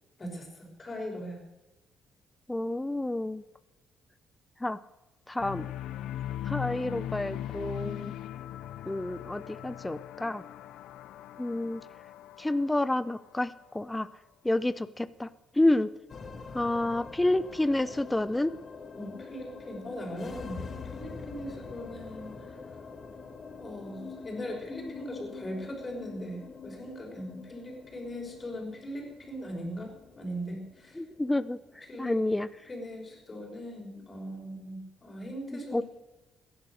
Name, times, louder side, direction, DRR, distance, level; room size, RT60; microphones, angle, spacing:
voice 1, 0.2-1.4 19.0-22.6 23.6-31.0 31.9-32.2 32.7-35.8, equal, 30° left, 0 dB, 6.1 m, -40 dB
voice 2, 2.5-3.4 4.6-4.8 5.3-5.7 6.4-8.1 8.9-10.4 11.4-11.8 12.4-14.1 14.4-15.3 15.5-15.9 16.5-18.5 31.0-32.5 35.5-35.8, left 1 dB, 10° left, 15 dB, 0.6 m, -29 dB
sound 1, 5.4-13.6, left 12 dB, 85° left, 0.5 m, -39 dB
sound 2, 16.1-34.6, left 4 dB, 45° left, 1.9 m, -45 dB
15.5 x 11.0 x 6.5 m, 1.0 s
cardioid pair, 90°, 0 cm